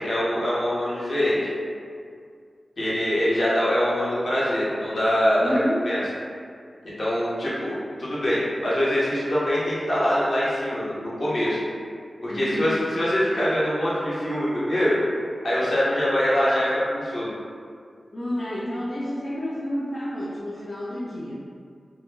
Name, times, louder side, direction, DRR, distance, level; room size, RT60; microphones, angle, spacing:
voice 1, 0.0-1.5 2.8-6.0 6.8-11.6 12.2-15.0 15.4-17.3, equal, 65° left, -9 dB, 0.8 m, -24 dB
voice 2, 5.4-5.8 12.3-12.9 18.1-21.3, equal, 50° left, -8 dB, 0.4 m, -30 dB
2.2 x 2.1 x 3.2 m, 2.2 s
cardioid pair, 50°, 0 cm